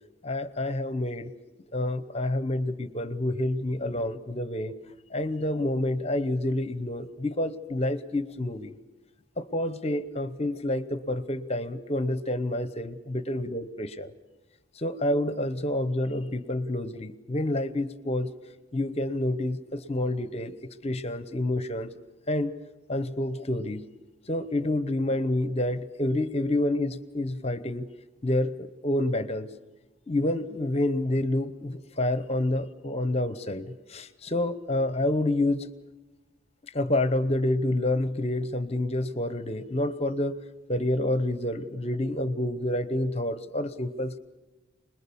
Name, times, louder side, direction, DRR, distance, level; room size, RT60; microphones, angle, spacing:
voice 1, 0.2-1.3 1.7-4.8 5.1-8.7 9.4-14.1 14.8-18.3 18.7-20.6 20.8-21.9 22.3-22.5 22.9-23.8 24.3-27.9 28.2-29.5 30.1-35.7 36.7-40.3 40.7-44.2, left 1 dB, 30° left, 13 dB, 0.9 m, -28 dB
26.0 x 21.0 x 7.1 m, 1.2 s
head